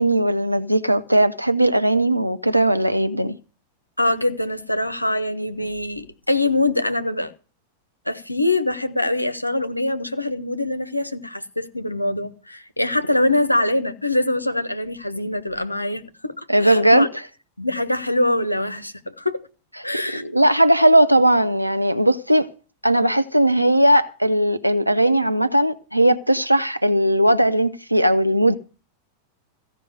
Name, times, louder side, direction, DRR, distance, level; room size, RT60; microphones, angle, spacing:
voice 1, 0.0-3.4 16.5-17.1 20.1-22.5 22.8-28.6, right 1 dB, 90° right, 0.7 m, -18 dB
voice 2, 4.0-7.3 8.1-17.1 17.6-19.4 19.8-20.2, left 2 dB, 85° left, 0.8 m, -23 dB
15.0 x 5.3 x 9.8 m
figure-of-eight pair, 90°, 0 cm